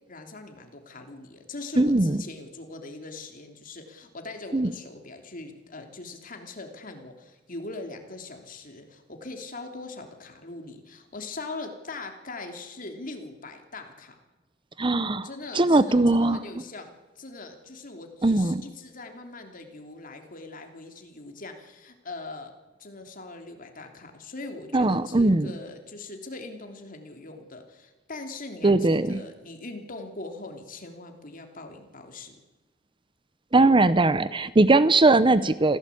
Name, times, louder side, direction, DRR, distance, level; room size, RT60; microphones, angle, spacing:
voice 1, 0.1-14.1 15.2-22.5 22.8-32.3, left 3 dB, 45° left, 4 dB, 3.2 m, -41 dB
voice 2, 1.8-2.2 4.5-4.7 14.8-15.3 15.5-16.4 18.2-18.6 24.7-25.5 28.6-29.2 33.5-35.8, right 2 dB, 25° right, 15 dB, 0.7 m, -20 dB
25.5 x 16.5 x 8.6 m, 1.1 s
head